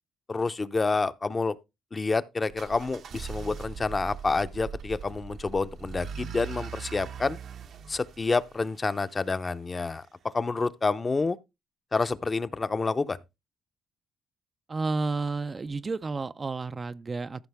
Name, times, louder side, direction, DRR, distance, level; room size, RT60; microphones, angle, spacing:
voice 1, 0.3-1.6 1.9-7.4 7.9-10.1 10.3-11.4 11.9-13.2, left 3 dB, 30° left, 0.6 m, -28 dB
sound 1, 2.5-9.4, right 7 dB, 65° right, 0.9 m, -41 dB
voice 2, 14.7-17.5, right 3 dB, 30° right, 0.4 m, -31 dB
14.0 x 5.6 x 3.5 m
cardioid pair, 90°, 0 cm